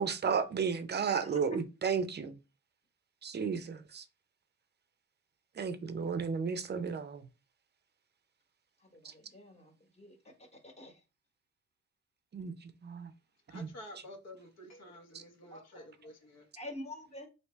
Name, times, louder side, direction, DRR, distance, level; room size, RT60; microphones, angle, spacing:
voice 1, 0.0-2.4 3.2-4.0 5.6-7.3 12.3-13.1 13.5-13.7 15.1-15.2, right 6 dB, 35° right, 0.5 m, -33 dB
voice 2, 1.1-1.4 9.0-9.7 10.0-10.2 10.6-10.9 15.5-15.9 16.6-17.3, left 1 dB, 20° left, 1.1 m, -46 dB
voice 3, 13.5-16.5, left 1 dB, 60° left, 0.9 m, -50 dB
3.2 x 2.8 x 3.1 m
cardioid pair, 90°, 30 cm